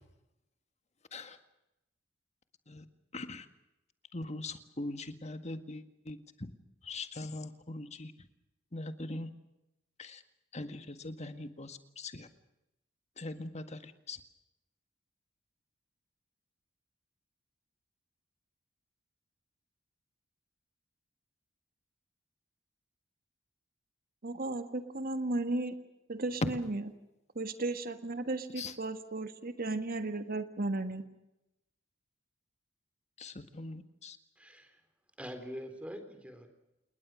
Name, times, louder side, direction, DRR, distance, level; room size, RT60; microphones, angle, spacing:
voice 1, 3.1-3.5 4.1-6.5 6.8-8.1 8.7-9.3 10.0-10.2 10.5-12.3 13.2-14.2 26.4-26.5 28.5-28.7 33.2-34.2, left 2 dB, 35° left, 9 dB, 1.8 m, -41 dB
voice 2, 24.2-25.8 26.1-26.8 27.3-31.0, right 2 dB, 50° right, 9 dB, 1.6 m, -35 dB
voice 3, 34.4-34.8 35.2-36.5, equal, 5° right, 7 dB, 3.8 m, -44 dB
29.0 x 20.0 x 6.3 m, 0.92 s
head